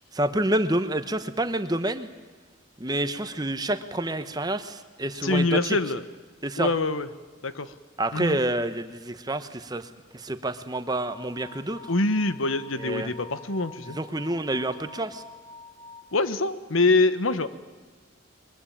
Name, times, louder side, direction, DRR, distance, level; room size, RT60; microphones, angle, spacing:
voice 1, 0.1-2.1 2.8-5.8 6.4-6.7 8.0-11.8 12.8-13.1 13.9-15.2, right 1 dB, 20° right, 10 dB, 1.1 m, -28 dB
voice 2, 5.2-6.0 6.6-7.1 7.4-7.7 8.1-8.4 11.9-14.0 16.1-17.5, left 2 dB, 85° left, 12 dB, 1.3 m, -24 dB
sound 1, 10.9-16.0, left 3 dB, 30° left, 1.6 m, -46 dB
22.5 x 21.5 x 8.7 m, 1.4 s
head